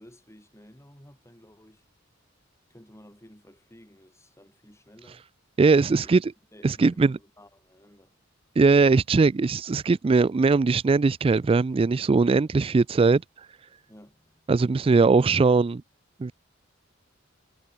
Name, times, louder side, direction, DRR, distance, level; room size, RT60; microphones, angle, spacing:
voice 1, 0.0-1.9 2.7-5.2 5.8-6.1 6.5-8.1 13.9-14.5, equal, 15° left, 7.6 m, -53 dB
voice 2, 5.6-6.3 6.6-7.2 8.6-13.5 14.5-15.8 16.2-16.3, right 4 dB, 30° right, 0.3 m, -20 dB
head